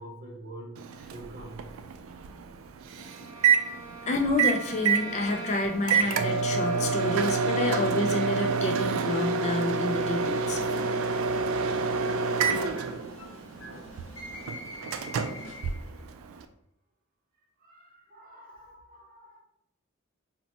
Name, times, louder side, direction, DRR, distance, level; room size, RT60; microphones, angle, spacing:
voice 1, 0.0-1.8 2.9-3.3 13.4-13.8 14.1-14.3 17.6-19.4, right 1 dB, 40° right, -1 dB, 0.7 m, -48 dB
Microwave oven, 0.8-16.5, right 5 dB, 75° right, 0.3 m, -28 dB
Bowed string instrument, 3.0-8.0, right 4 dB, 20° right, 1.0 m, -43 dB
voice 2, 4.0-10.6, left 2 dB, 35° left, 4 dB, 0.3 m, -29 dB
sound 1, 10.6-16.0, left 1 dB, 75° left, 0.7 m, -45 dB
4.0 x 2.1 x 2.8 m, 0.75 s
head